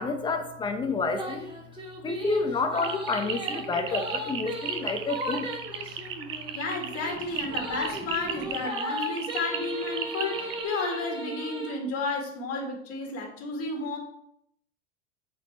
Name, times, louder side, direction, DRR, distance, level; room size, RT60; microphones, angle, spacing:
voice 1, 0.0-1.5 2.0-5.5, left 3 dB, 10° left, 5 dB, 0.9 m, -29 dB
sound 1, 1.1-11.7, right 1 dB, 15° right, 2.3 m, -36 dB
sound 2, 2.7-10.6, right 8 dB, 35° right, 0.8 m, -36 dB
voice 2, 6.5-14.0, left 3 dB, 40° left, 1 dB, 2.0 m, -32 dB
7.0 x 4.5 x 4.4 m, 0.71 s
hypercardioid pair, 85°, 38 cm